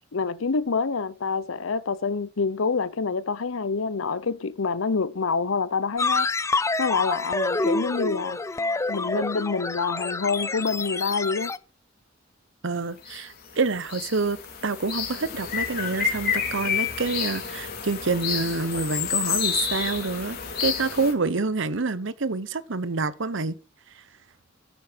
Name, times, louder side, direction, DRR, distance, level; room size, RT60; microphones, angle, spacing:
voice 1, 0.1-8.6 8.9-11.5, left 4 dB, 85° left, 0.7 m, -27 dB
sound 1, 6.0-11.6, left 3 dB, 15° left, 0.4 m, -27 dB
voice 2, 12.6-14.4 14.6-23.6, right 3 dB, 70° right, 0.9 m, -27 dB
sound 2, 13.0-13.2 13.5-21.1, left 7 dB, 50° left, 3.1 m, -29 dB
10.0 x 8.4 x 4.5 m
head